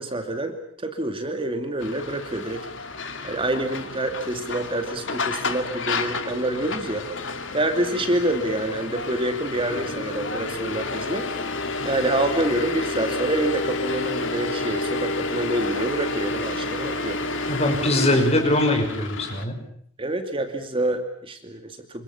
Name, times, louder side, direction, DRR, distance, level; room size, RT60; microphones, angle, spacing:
voice 1, 0.0-2.7 3.2-7.1 7.5-11.3 11.8-17.2 20.0-22.0, right 1 dB, 30° right, 6 dB, 2.6 m, -27 dB
sound 1, 1.8-19.4, left 3 dB, 80° left, 2.4 m, -30 dB
voice 2, 17.5-19.6, left 1 dB, 35° left, 5 dB, 5.9 m, -21 dB
26.5 x 26.5 x 7.3 m, 0.65 s
head